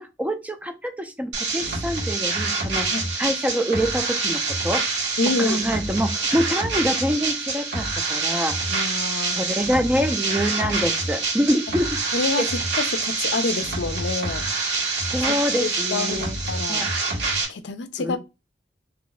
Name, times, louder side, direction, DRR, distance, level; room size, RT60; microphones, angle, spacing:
voice 1, 0.0-2.9 3.2-5.1 5.4-8.6 9.4-12.0 15.1-16.4 16.7-16.9 18.0-18.2, equal, 10° right, 0.4 m, -25 dB
sound 1, 1.3-17.4, right 3 dB, 85° right, 1.3 m, -26 dB
voice 2, 5.2-5.6 8.7-9.4 12.1-12.5 12.8-14.5 15.3-16.9 17.5-18.2, left 3 dB, 70° left, 0.5 m, -27 dB
2.8 x 2.3 x 3.9 m
head